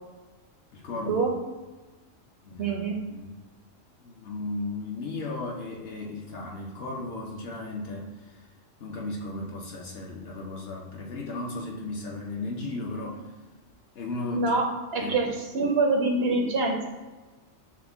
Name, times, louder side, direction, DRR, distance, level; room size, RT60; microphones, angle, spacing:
voice 1, 0.7-1.2 2.4-2.8 3.1-3.4 4.0-8.5 8.8-13.3 13.9-14.5 15.0-15.3, left 2 dB, 60° left, -1 dB, 0.7 m, -35 dB
voice 2, 2.6-3.0 14.3-14.7 14.9-15.3 15.5-16.9, right 3 dB, 65° right, 1 dB, 0.7 m, -25 dB
5.8 x 2.1 x 3.4 m, 1.2 s
omnidirectional pair, 1.3 m